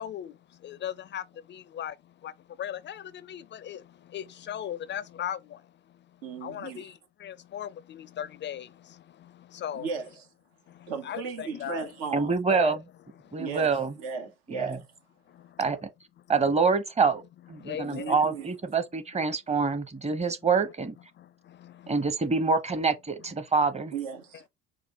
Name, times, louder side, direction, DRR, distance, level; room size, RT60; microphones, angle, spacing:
voice 1, 0.0-9.9 10.7-11.9 12.5-12.8 13.2-13.4 15.3-15.8 17.6-18.1 21.1-22.1, left 10 dB, 40° left, 0.4 m, -38 dB
voice 2, 6.2-6.9 9.7-10.3 10.9-12.3 13.4-14.8 17.8-18.5 23.9-24.4, right 5 dB, 75° right, 1.0 m, -36 dB
voice 3, 12.1-12.8 13.3-13.9 14.5-14.8 15.6-15.8 16.3-17.2 17.5-20.9 21.9-23.9, right 5 dB, 20° right, 0.9 m, -26 dB
4.8 x 2.2 x 3.5 m
hypercardioid pair, 50°, 30 cm